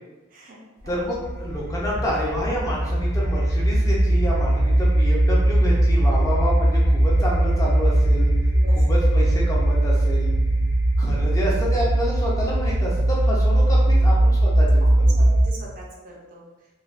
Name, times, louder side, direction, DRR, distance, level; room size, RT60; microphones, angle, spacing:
voice 1, 0.3-1.1 8.3-9.0 13.8-14.2 14.5-16.4, right 1 dB, 40° right, -2 dB, 0.4 m, -42 dB
sound 1, 0.8-15.7, right 1 dB, 65° left, 0.8 m, -19 dB
voice 2, 0.9-8.3 8.9-10.3 11.0-14.8, left 1 dB, 15° left, -4 dB, 0.5 m, -28 dB
3.2 x 2.3 x 2.4 m, 1.1 s
head